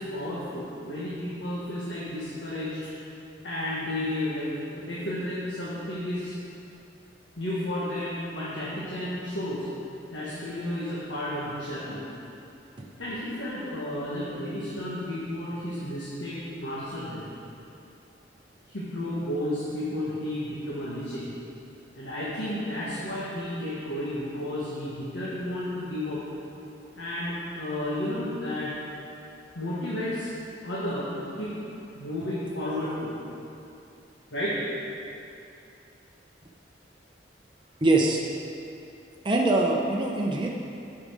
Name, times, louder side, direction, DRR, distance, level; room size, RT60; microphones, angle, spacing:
voice 1, 0.0-2.8 3.4-6.3 7.4-9.7 10.1-12.0 13.0-17.3 18.7-21.3 21.9-26.2 26.9-28.8 29.5-30.3 30.6-31.5 31.9-33.2 34.3-34.6, left 1 dB, 90° left, -9 dB, 1.5 m, -32 dB
voice 2, 37.8-38.2 39.2-40.5, right 2 dB, 25° right, -1 dB, 0.6 m, -23 dB
8.5 x 5.4 x 5.0 m, 2.7 s
head